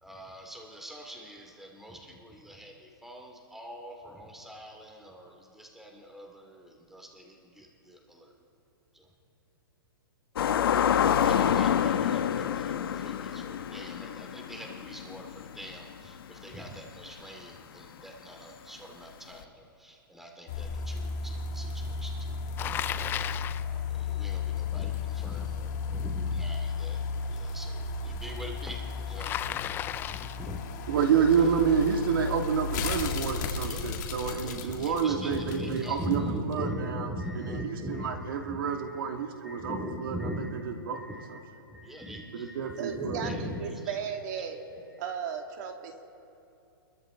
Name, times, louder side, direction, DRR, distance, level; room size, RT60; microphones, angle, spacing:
voice 1, 0.0-8.3 8.9-9.1 10.8-22.9 23.2-27.0 27.3-29.6 30.0-30.6 33.6-39.1 39.4-40.6 40.9-41.4 41.7-44.0 44.3-44.6 44.9-45.1, equal, 5° right, 0 dB, 2.7 m, -41 dB
sound 1, 10.4-15.8 16.2-16.3 19.4-19.5, left 9 dB, 70° left, 1.2 m, -27 dB
sound 2, 20.5-36.1 36.5-36.6, left 5 dB, 50° left, 2.7 m, -34 dB
Bicycle, 22.6-23.7 29.2-30.5, left 11 dB, 15° left, 0.4 m, -34 dB
voice 2, 30.9-36.2 36.5-37.1 37.5-39.8 40.0-41.0 42.3-43.2, right 7 dB, 65° right, 3 dB, 2.6 m, -28 dB
voice 3, 42.8-44.6 45.0-46.0, right 7 dB, 50° right, 3 dB, 2.5 m, -35 dB
29.5 x 22.5 x 4.0 m, 2.7 s
hypercardioid pair, 145°, 12 cm